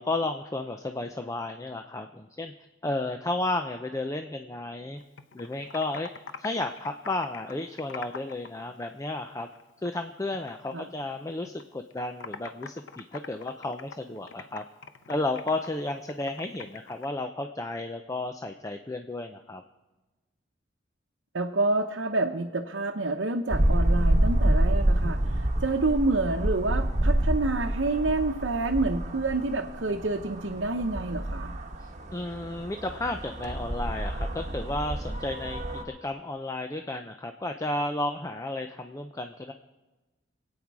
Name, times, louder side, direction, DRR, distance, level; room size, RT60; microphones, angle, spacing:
voice 1, 0.0-2.5 2.8-5.0 5.3-6.1 6.4-9.5 9.8-14.6 15.1-19.6 32.1-35.6 36.0-39.5, left 2 dB, 20° left, 6 dB, 0.6 m, -33 dB
Computer keyboard, 5.0-8.5 8.8-10.0 10.3-11.6 11.9-17.1, left 5 dB, 85° left, 0.8 m, -43 dB
voice 2, 21.3-31.5, right 2 dB, 90° right, 1 dB, 0.9 m, -28 dB
sound 1, 23.5-35.8, right 1 dB, 40° right, 1.3 m, -28 dB
25.5 x 8.9 x 4.8 m, 1.1 s
head